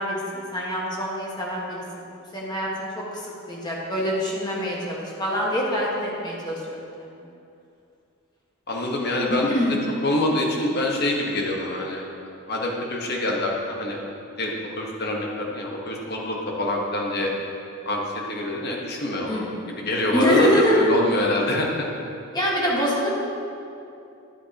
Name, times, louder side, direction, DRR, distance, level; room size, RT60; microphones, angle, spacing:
voice 1, 0.0-6.8 9.3-9.8 19.3-19.7 20.1-20.8 22.3-23.1, equal, 20° left, -4 dB, 1.4 m, -25 dB
voice 2, 8.7-9.5 10.0-12.0 12.5-14.0 14.4-17.3 17.9-18.0 18.3-21.8, left 1 dB, 50° left, -1 dB, 1.2 m, -25 dB
10.5 x 8.3 x 2.9 m, 2.6 s
head